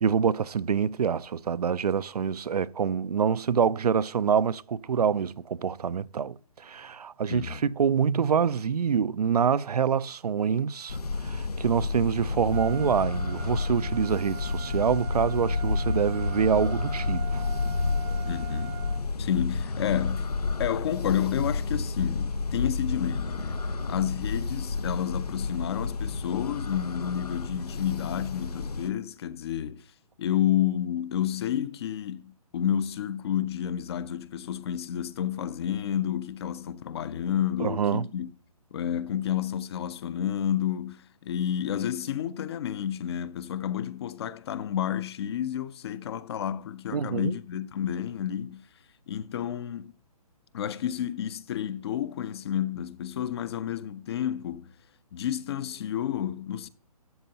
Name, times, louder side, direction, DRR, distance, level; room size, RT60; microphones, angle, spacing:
voice 1, 0.0-6.4 6.6-17.5 37.6-38.1 46.9-47.3, right 7 dB, 85° right, 0.5 m, -26 dB
voice 2, 7.3-7.6 18.3-18.8 19.2-20.3 20.6-29.8 30.2-38.3 38.7-48.7 49.1-49.9 50.5-54.7 55.1-56.7, left 10 dB, 45° left, 0.7 m, -30 dB
sound 1, 10.9-28.9, left 3 dB, 90° left, 1.0 m, -30 dB
Trumpet, 12.5-19.0, right 14 dB, 15° right, 0.4 m, -43 dB
12.5 x 8.5 x 2.8 m
hypercardioid pair, 145°, 19 cm